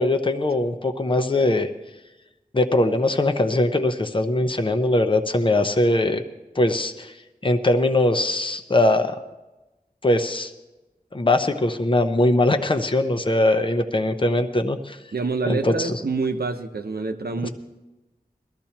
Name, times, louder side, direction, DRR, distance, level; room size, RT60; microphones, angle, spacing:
voice 1, 0.0-1.7 2.5-6.2 6.5-7.2 7.4-9.2 10.0-10.5 11.1-15.0 15.4-15.9 17.4-17.5, left 2 dB, 35° left, 6 dB, 0.9 m, -21 dB
voice 2, 15.1-17.5, right 4 dB, 85° right, 5 dB, 0.9 m, -26 dB
21.0 x 13.5 x 2.9 m, 1.1 s
wide cardioid pair, 45°, 16 cm